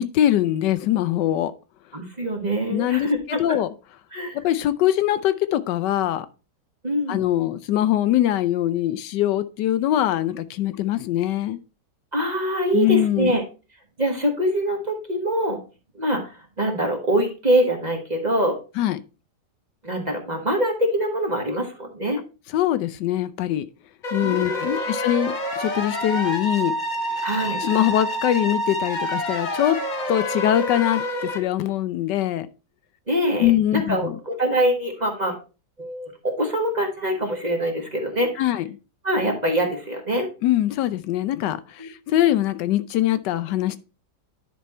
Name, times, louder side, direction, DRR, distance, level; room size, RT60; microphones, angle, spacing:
voice 1, 0.0-1.5 2.7-3.7 4.3-6.3 7.1-11.6 12.7-13.3 18.8-19.0 22.5-23.7 24.1-26.8 27.6-29.8 30.1-32.5 33.4-34.2 38.4-38.7 40.4-43.8, left 12 dB, 80° left, 1.2 m, -22 dB
voice 2, 1.9-3.6 4.1-4.4 6.8-7.2 12.1-13.4 14.0-15.6 15.9-18.6 19.8-22.2 24.2-24.9 27.2-27.6 33.1-35.4 35.8-38.4 39.0-40.3 41.8-41.9, right 1 dB, 25° right, 1.4 m, -24 dB
sound 1, 24.0-31.4, left 1 dB, 30° left, 1.0 m, -28 dB
10.5 x 4.2 x 4.2 m
omnidirectional pair, 1.9 m